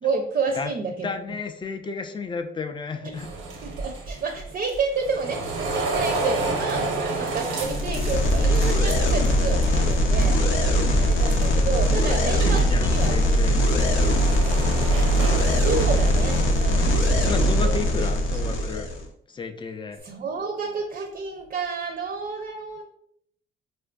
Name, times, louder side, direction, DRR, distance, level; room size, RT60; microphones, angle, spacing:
voice 1, 0.0-1.1 3.6-10.6 10.9-13.1 15.5-18.1 20.0-22.8, right 4 dB, 45° right, 4 dB, 0.5 m, -30 dB
voice 2, 1.0-3.3 11.8-14.0 17.2-18.9 19.3-20.0, left 4 dB, 25° left, 7 dB, 0.4 m, -32 dB
sound 1, 3.1-9.9 10.2-10.6 11.1-11.6 12.0-16.6, right 3 dB, 90° right, 0.7 m, -31 dB
sound 2, 7.6-19.0, equal, 80° left, 0.6 m, -21 dB
Bass guitar, 7.6-13.9, left 1 dB, ahead, 0.7 m, -45 dB
4.2 x 2.5 x 2.3 m, 0.69 s
cardioid pair, 90°, 20 cm